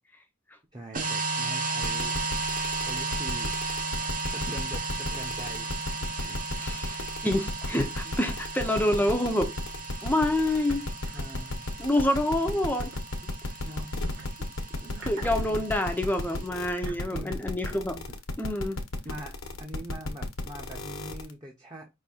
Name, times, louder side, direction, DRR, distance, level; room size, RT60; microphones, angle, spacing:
voice 1, 0.7-2.2 2.7-3.5 4.3-5.7 6.0-6.4 8.0-8.2 11.1-11.6 13.2-13.4 13.6-13.9 14.4-14.5 14.8-15.1 15.5-15.6 17.1-17.4 17.7-17.8 18.1-18.2 18.6-18.7 19.0-21.9, right 1 dB, 20° right, 0.9 m, -43 dB
sound 1, 0.9-16.5, right 3 dB, 40° right, 0.9 m, -35 dB
sound 2, 1.8-21.3, left 2 dB, 75° left, 1.0 m, -33 dB
voice 2, 6.6-9.5 10.0-10.8 11.8-12.9 15.1-18.0 18.4-18.8, left 1 dB, 10° left, 0.6 m, -27 dB
sound 3, 10.7-11.7 12.9-14.3 14.7-18.1, right 3 dB, 70° right, 1.8 m, -49 dB
5.3 x 2.8 x 2.7 m
head